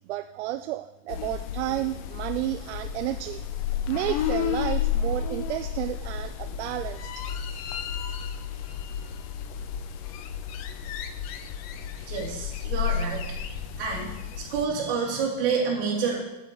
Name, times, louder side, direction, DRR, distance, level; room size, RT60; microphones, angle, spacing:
voice 1, 0.1-3.4 3.9-7.0, right 14 dB, 85° right, 9 dB, 0.5 m, -31 dB
sound 1, 1.1-14.6, left 8 dB, 35° left, 0.4 m, -32 dB
voice 2, 12.0-13.2 13.8-14.1 14.4-16.2, right 5 dB, 55° right, -3 dB, 2.9 m, -28 dB
8.1 x 7.7 x 3.9 m, 0.98 s
supercardioid pair, 170°, 33 cm